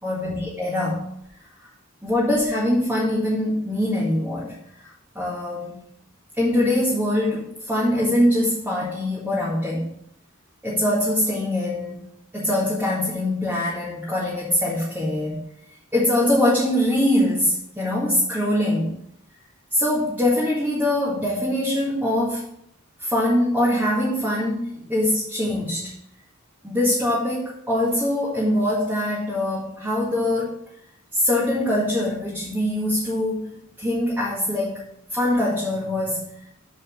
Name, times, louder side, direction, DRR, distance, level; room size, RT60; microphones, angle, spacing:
voice 1, 0.0-1.1 2.0-4.5 4.8-4.9 5.2-5.8 6.4-9.9 10.6-15.4 15.9-18.9 19.7-22.5 23.0-25.9 26.6-30.6 31.1-36.2, left 1 dB, 10° right, -7 dB, 2.0 m, -23 dB
6.9 x 5.3 x 7.0 m, 0.74 s
head